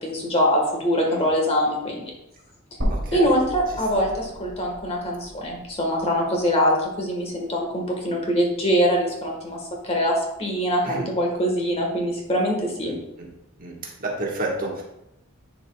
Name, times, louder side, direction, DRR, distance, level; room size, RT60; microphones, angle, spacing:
voice 1, 0.0-2.1 3.1-12.9, equal, 30° left, -1 dB, 1.3 m, -23 dB
sound 1, 2.8-6.9 7.3-7.4 8.8-8.9, equal, 80° right, 2.5 m, -33 dB
voice 2, 2.9-3.3 10.8-11.0 12.8-12.9 13.6-14.8, right 2 dB, 40° right, -2 dB, 1.3 m, -30 dB
10.5 x 4.7 x 2.2 m, 0.85 s
head